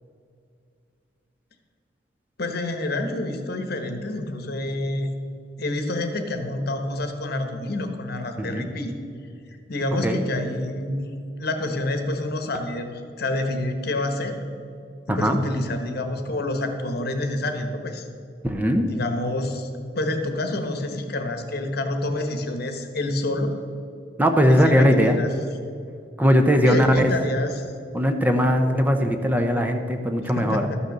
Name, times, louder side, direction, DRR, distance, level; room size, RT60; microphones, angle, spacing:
voice 1, 2.4-5.1 5.6-8.9 9.5-11.1 11.4-14.4 15.1-18.0 18.9-19.7 19.9-23.5 24.5-25.3 26.6-27.7 30.3-30.8, left 2 dB, 60° left, 6 dB, 1.2 m, -27 dB
voice 2, 8.4-8.7 10.0-10.2 15.1-15.4 18.4-18.9 24.2-25.2 26.2-27.1 27.9-30.6, equal, 10° right, 5 dB, 0.7 m, -20 dB
12.5 x 6.5 x 6.6 m, 2.4 s
head